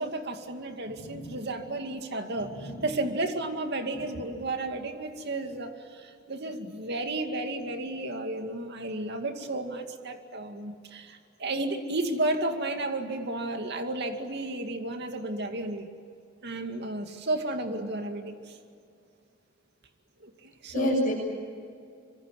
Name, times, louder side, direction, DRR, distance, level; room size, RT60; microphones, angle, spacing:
voice 1, 0.0-15.9 16.4-18.6 20.2-20.9, right 2 dB, 60° right, 5 dB, 2.4 m, -33 dB
voice 2, 1.0-1.4 2.4-2.9 20.7-21.1, left 1 dB, 45° left, -7 dB, 7.4 m, -30 dB
26.0 x 24.5 x 7.7 m, 2.4 s
head